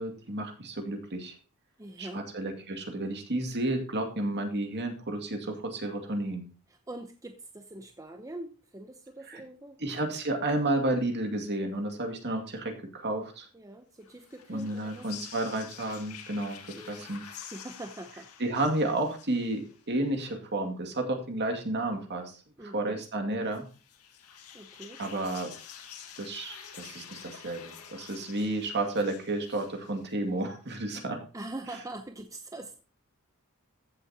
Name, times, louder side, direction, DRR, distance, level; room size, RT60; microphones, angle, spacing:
voice 1, 0.0-1.4 2.0-6.4 9.3-9.4 9.8-13.5 14.5-17.2 18.4-23.6 25.0-25.5 26.2-31.2, right 2 dB, 50° right, 4 dB, 2.3 m, -31 dB
voice 2, 1.8-2.3 6.7-9.8 13.5-15.1 16.7-17.0 17.5-18.3 22.6-23.0 24.5-25.0 31.3-32.8, right 2 dB, 15° right, 6 dB, 0.8 m, -43 dB
sound 1, 14.0-20.0 23.5-30.4, left 8 dB, 90° left, 1.8 m, -48 dB
15.0 x 7.6 x 2.9 m, 0.35 s
head